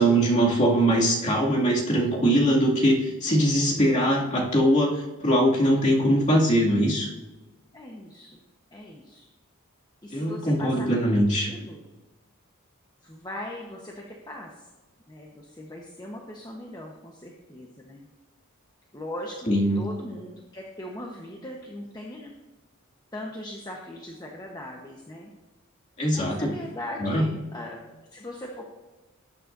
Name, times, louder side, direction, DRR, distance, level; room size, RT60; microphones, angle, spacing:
voice 1, 0.0-7.1 10.1-11.5 19.5-19.8 26.0-26.5 27.0-27.3, right 1 dB, 35° left, -4 dB, 2.4 m, -22 dB
voice 2, 7.7-8.4 8.7-9.3 10.0-11.1 11.4-11.8 13.0-14.7 15.1-18.1 18.9-19.4 19.7-22.3 23.1-25.3 26.1-27.8 28.1-28.7, left 1 dB, 20° left, -1 dB, 1.1 m, -39 dB
19.0 x 8.7 x 2.7 m, 1.1 s
head